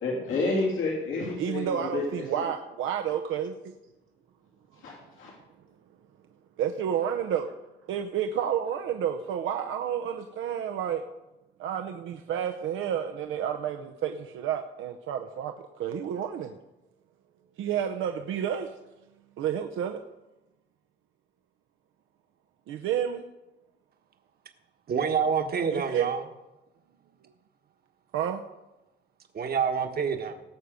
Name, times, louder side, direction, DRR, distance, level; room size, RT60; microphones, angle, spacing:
voice 1, 0.0-2.2 4.8-5.3, left 3 dB, 80° left, -3 dB, 3.2 m, -29 dB
voice 2, 1.4-3.5 6.6-7.5 7.9-11.0 11.6-15.5 15.8-16.5 17.6-18.7 19.4-20.0 22.7-23.2 25.7-26.1 28.1-28.4, right 9 dB, 80° right, 5 dB, 0.7 m, -30 dB
voice 3, 24.9-26.2 29.3-30.4, right 6 dB, 50° right, 5 dB, 1.3 m, -27 dB
18.0 x 6.8 x 5.1 m, 1.0 s
cardioid pair, 90°, 20 cm